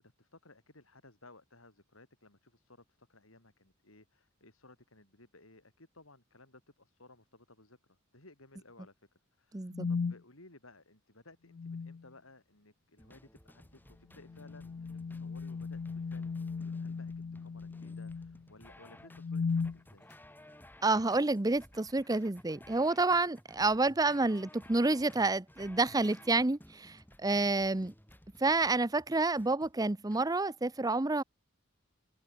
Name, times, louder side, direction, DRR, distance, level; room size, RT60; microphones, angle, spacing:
voice 1, 0.0-17.1 17.4-20.1, left 2 dB, 85° left, 8.0 m, -59 dB
voice 2, 9.5-9.9 20.8-27.9 28.4-31.2, right 3 dB, 20° right, 0.7 m, -29 dB
sound 1, 9.7-10.2 11.5-12.0 14.2-18.4 19.1-19.8, left 5 dB, 50° left, 0.4 m, -36 dB
sound 2, 13.0-30.2, left 1 dB, 10° left, 4.7 m, -57 dB
head